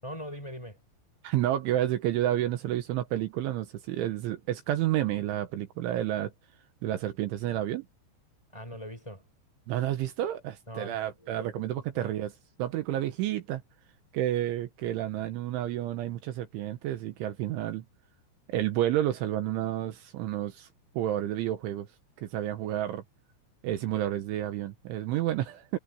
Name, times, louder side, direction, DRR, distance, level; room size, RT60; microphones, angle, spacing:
voice 1, 0.0-0.8 8.5-9.2 10.7-12.1, equal, 5° left, 6.4 m, -42 dB
voice 2, 1.2-6.3 6.8-7.9 9.7-12.3 12.6-13.6 14.1-17.9 18.5-20.7 21.0-21.9 22.2-23.0 23.6-25.8, right 13 dB, 75° right, 3.5 m, -30 dB
omnidirectional pair, 5.8 m